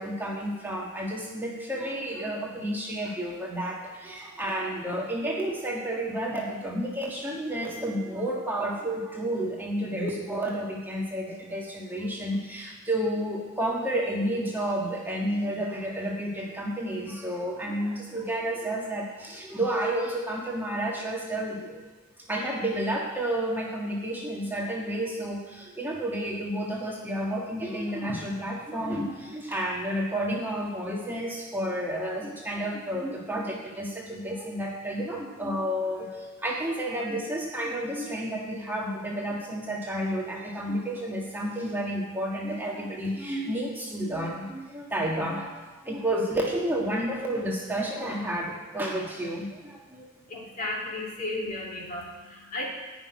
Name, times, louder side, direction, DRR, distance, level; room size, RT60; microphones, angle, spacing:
voice 1, 0.0-21.8 22.3-50.1 50.3-50.4, right 1 dB, 10° right, -3 dB, 1.6 m, -31 dB
voice 2, 50.3-52.7, left 2 dB, 40° left, -3 dB, 3.0 m, -34 dB
14.0 x 6.2 x 9.6 m, 1.2 s
head